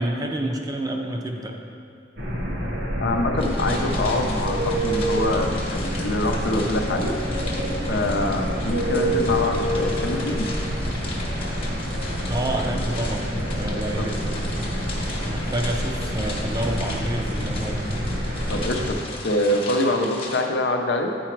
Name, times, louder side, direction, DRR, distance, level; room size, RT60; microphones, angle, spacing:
voice 1, 0.0-1.6 12.3-14.8 15.3-17.9, right 1 dB, 20° right, 2 dB, 0.5 m, -29 dB
sound 1, 2.2-18.9, equal, 65° right, 1.2 m, -27 dB
voice 2, 3.0-7.2 7.9-10.5 14.0-14.2 18.5-21.2, left 1 dB, 70° left, 3 dB, 0.6 m, -25 dB
sound 2, 3.4-20.4, left 2 dB, 30° left, 1.0 m, -37 dB
8.6 x 4.8 x 4.5 m, 2.4 s
head